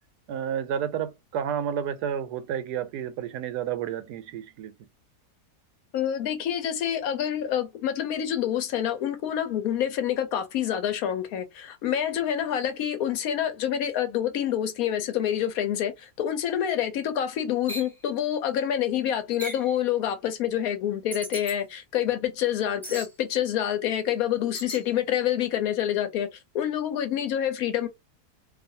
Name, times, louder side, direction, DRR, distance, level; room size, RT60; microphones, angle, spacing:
voice 1, 0.3-4.7, right 9 dB, 90° right, 1.2 m, -31 dB
voice 2, 5.9-27.9, left 10 dB, 70° left, 1.0 m, -27 dB
sound 1, 17.7-17.9 19.4-19.7 21.1-21.6 22.8-23.1 24.5-24.8, equal, ahead, 0.8 m, -37 dB
2.6 x 2.4 x 2.6 m
omnidirectional pair, 1.7 m